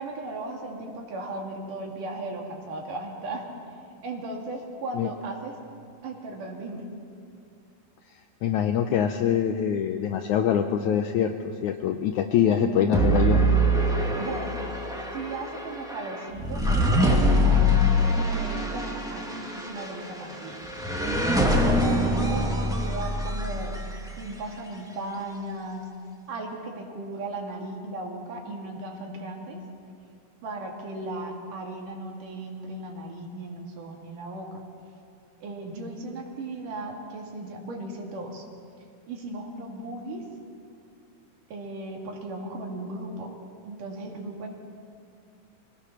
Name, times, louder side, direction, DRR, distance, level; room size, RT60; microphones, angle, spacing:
voice 1, 0.0-3.5 4.0-5.5 6.0-6.9 14.1-14.6 15.1-17.7 18.1-20.6 21.1-23.8 24.2-25.9 26.3-29.6 30.4-34.6 35.4-38.4 39.1-40.2 41.5-43.3 43.6-44.5, right 2 dB, 65° right, 0 dB, 3.7 m, -36 dB
voice 2, 8.4-11.3 11.6-13.4, left 8 dB, 80° left, 6 dB, 1.8 m, -24 dB
sound 1, 12.9-24.2, equal, 5° right, 0.4 m, -24 dB
25.5 x 18.5 x 5.9 m, 2.4 s
omnidirectional pair, 4.1 m